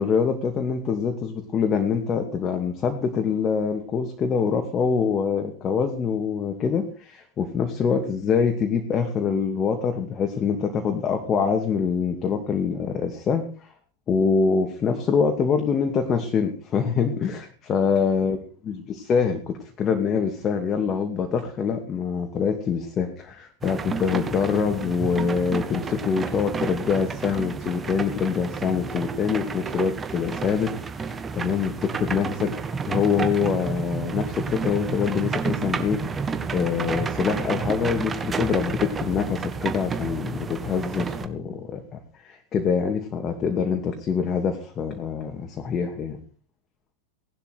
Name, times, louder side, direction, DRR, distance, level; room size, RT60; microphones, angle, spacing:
voice 1, 0.0-13.5 14.1-18.4 18.7-32.6 32.9-36.0 36.5-42.0 42.2-46.2, left 6 dB, 25° left, 4 dB, 2.6 m, -25 dB
sound 1, 23.6-41.3, right 5 dB, 20° right, 1.8 m, -31 dB
19.5 x 12.0 x 4.9 m, 0.40 s
figure-of-eight pair, 90°, 0 cm